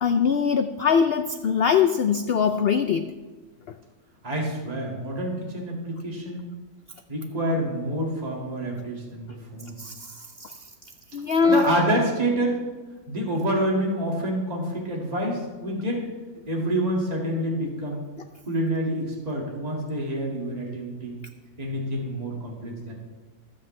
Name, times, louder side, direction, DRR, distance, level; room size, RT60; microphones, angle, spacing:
voice 1, 0.0-3.1 9.8-10.6 11.1-11.7, left 6 dB, 80° left, 9 dB, 0.5 m, -22 dB
voice 2, 4.2-6.5 7.1-9.8 11.5-12.6 13.1-16.0 16.5-18.0 18.5-21.2 21.6-22.9, right 1 dB, 25° right, -2 dB, 2.2 m, -27 dB
20.5 x 7.6 x 3.3 m, 1.3 s
omnidirectional pair, 1.6 m